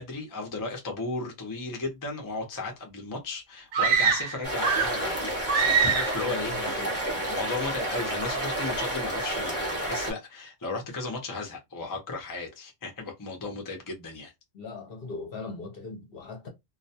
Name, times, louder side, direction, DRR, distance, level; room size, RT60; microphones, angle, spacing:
voice 1, 0.0-14.3, left 3 dB, 30° left, 0.3 m, -35 dB
sound 1, 3.7-5.1 5.5-6.3, right 6 dB, 65° right, 0.9 m, -24 dB
sound 2, 4.4-10.1, right 1 dB, 10° left, 1.0 m, -30 dB
voice 2, 6.2-7.1 14.5-16.5, left 3 dB, 50° left, 0.8 m, -39 dB
2.3 x 2.2 x 2.7 m
omnidirectional pair, 1.4 m